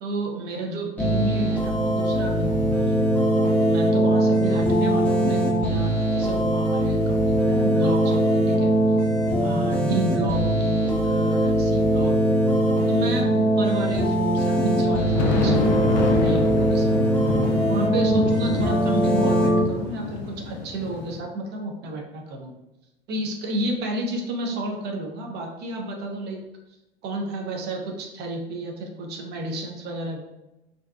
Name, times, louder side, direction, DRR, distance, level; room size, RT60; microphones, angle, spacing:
voice 1, 0.0-3.0 3.6-8.7 9.4-12.1 12.9-17.0 17.7-22.5 23.1-26.4 27.0-30.2, right 1 dB, 35° right, 1 dB, 0.6 m, -31 dB
sound 1, 1.0-19.6, right 1 dB, 5° left, 0.7 m, -21 dB
sound 2, 3.4-3.8 4.1-10.2 10.8-12.2 14.8-21.2, left 4 dB, 45° left, 0.4 m, -30 dB
2.6 x 2.2 x 2.3 m, 0.91 s
figure-of-eight pair, 80°, 31 cm